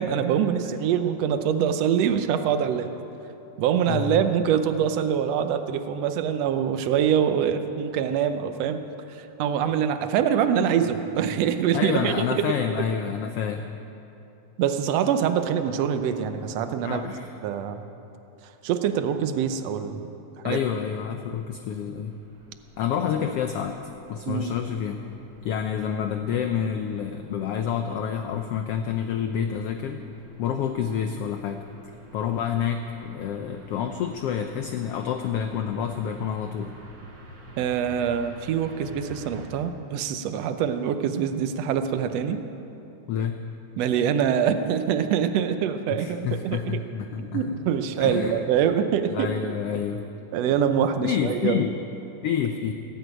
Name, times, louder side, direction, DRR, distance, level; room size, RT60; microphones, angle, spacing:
voice 1, 0.0-2.9 3.6-8.8 9.1-12.4 14.6-17.1 17.4-17.9 18.6-20.1 20.4-20.6 24.3-24.5 37.6-42.4 43.8-46.8 47.2-49.5 50.3-51.7, right 8 dB, 70° right, 8 dB, 1.7 m, -24 dB
voice 2, 3.9-4.2 11.7-13.7 16.8-17.3 20.4-22.1 22.8-23.8 24.1-25.0 25.4-30.0 30.4-31.6 32.1-36.7 43.1-43.4 45.9-47.6 48.0-48.3 49.1-50.0 51.0-51.7 52.2-52.7, left 8 dB, 85° left, 6 dB, 1.3 m, -28 dB
sound 1, 22.1-39.5, equal, 40° right, 2.5 m, -47 dB
19.0 x 8.1 x 9.1 m, 2.8 s
omnidirectional pair, 3.5 m